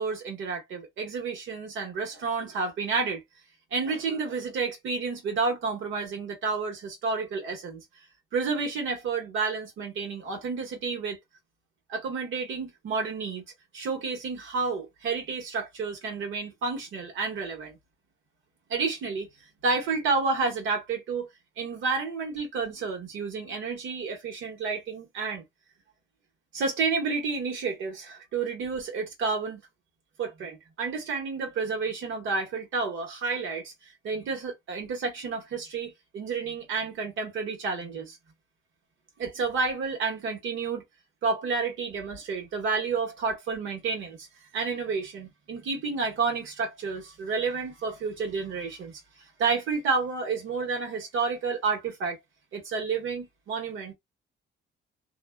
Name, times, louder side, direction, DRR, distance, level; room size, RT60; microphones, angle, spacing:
voice 1, 0.0-3.2 3.7-7.8 8.3-11.2 11.9-13.4 13.7-17.8 18.7-19.3 19.6-21.3 21.6-25.4 26.5-29.6 30.2-33.7 34.0-38.2 39.2-40.8 41.2-44.3 44.5-49.0 49.4-52.2 52.5-53.9, right 4 dB, 75° right, 1.2 m, -30 dB
2.5 x 2.2 x 2.3 m
cardioid pair, 90°, 20 cm